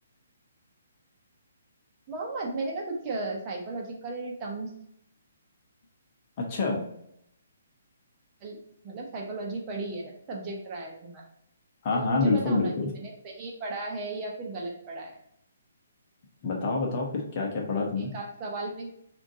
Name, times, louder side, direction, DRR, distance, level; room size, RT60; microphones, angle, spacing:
voice 1, 2.1-4.7 8.4-8.6 8.8-11.2 11.9-15.1 17.6-17.7 18.0-18.9, right 2 dB, 25° right, -2 dB, 0.8 m, -35 dB
voice 2, 6.4-6.8 11.8-12.9 16.4-18.1, left 3 dB, 35° left, -1 dB, 0.8 m, -27 dB
3.7 x 2.5 x 3.5 m, 0.73 s
figure-of-eight pair, 130°, 0 cm